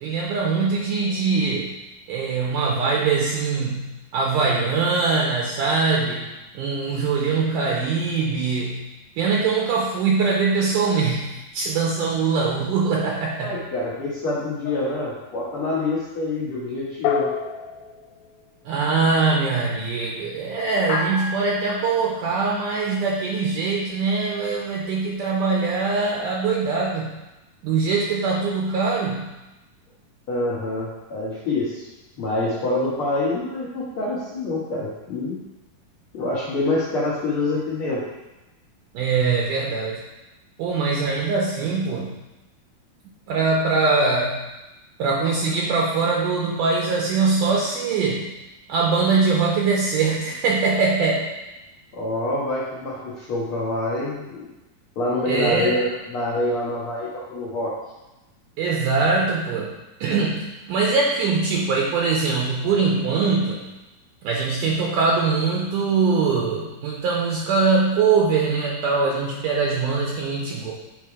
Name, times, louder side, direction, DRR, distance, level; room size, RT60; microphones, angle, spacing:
voice 1, 0.0-1.7 2.1-6.3 6.5-8.9 9.2-13.6 18.7-27.1 27.6-29.3 38.9-40.0 40.6-42.2 43.3-44.4 45.0-48.3 48.7-51.3 55.3-55.8 58.6-63.6 64.2-70.7, right 4 dB, 80° right, -2 dB, 1.9 m, -22 dB
voice 2, 13.4-17.3 30.3-31.9 32.2-35.4 36.1-38.0 51.9-54.5 54.9-57.7, left 2 dB, 70° left, -8 dB, 1.2 m, -26 dB
sound 1, 14.7-15.3 17.0-18.4 20.9-21.7, left 5 dB, 90° left, 2.5 m, -28 dB
8.6 x 3.4 x 4.8 m, 1.0 s
omnidirectional pair, 4.3 m